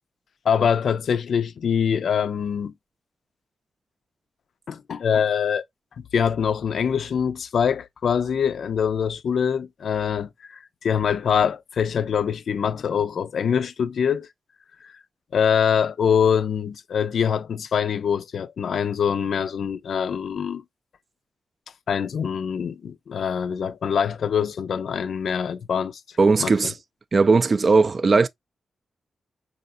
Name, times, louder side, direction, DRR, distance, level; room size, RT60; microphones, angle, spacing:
voice 1, 0.5-2.7 4.7-5.6 6.1-14.3 14.8-14.9 15.3-20.6 21.9-26.0 26.4-26.5, left 7 dB, 75° left, 0.4 m, -24 dB
voice 2, 26.2-26.7 27.1-28.3, right 4 dB, 45° right, 0.3 m, -18 dB
4.7 x 2.5 x 2.6 m
cardioid pair, 90°, 0 cm